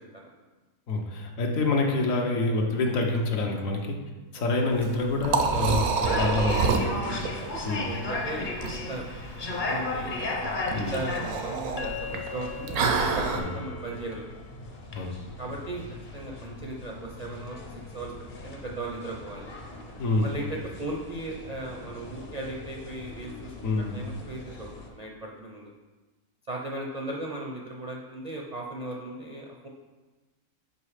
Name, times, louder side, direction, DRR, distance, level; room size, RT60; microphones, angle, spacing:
voice 1, 0.9-4.0 4.3-6.8 7.6-7.9 10.7-11.0 13.4-13.5 14.9-15.1 20.0-20.3 23.6-24.0, left 2 dB, 70° left, 1 dB, 1.2 m, -27 dB
Liquid, 4.7-13.4, right 5 dB, 90° right, 1.1 m, -29 dB
sound 1, 6.0-24.9, left 3 dB, 40° left, 0.8 m, -36 dB
voice 2, 6.8-7.2 7.7-9.1 9.4-10.2 10.6-14.2 15.4-15.8 16.1-18.1 18.4-19.5 20.2-23.5 23.9-25.7 26.5-29.7, right 2 dB, 50° right, -2 dB, 0.4 m, -37 dB
5.3 x 5.0 x 4.9 m, 1.2 s
omnidirectional pair, 1.5 m